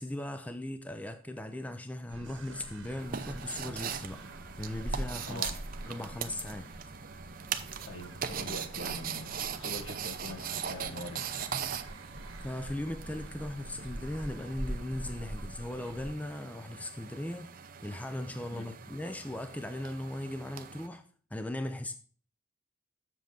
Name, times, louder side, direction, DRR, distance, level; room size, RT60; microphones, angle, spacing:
voice 1, 0.0-4.3 4.6-5.5 5.8-6.7 12.4-17.5 17.8-21.9, left 1 dB, 5° left, 0.4 m, -38 dB
sound 1, 2.1-16.1, right 1 dB, 70° right, 1.4 m, -44 dB
sound 2, 3.0-20.9, right 7 dB, 40° right, 0.6 m, -41 dB
voice 2, 5.3-5.6 7.8-11.4 18.6-18.7, left 1 dB, 75° left, 1.6 m, -43 dB
7.4 x 7.1 x 3.8 m
head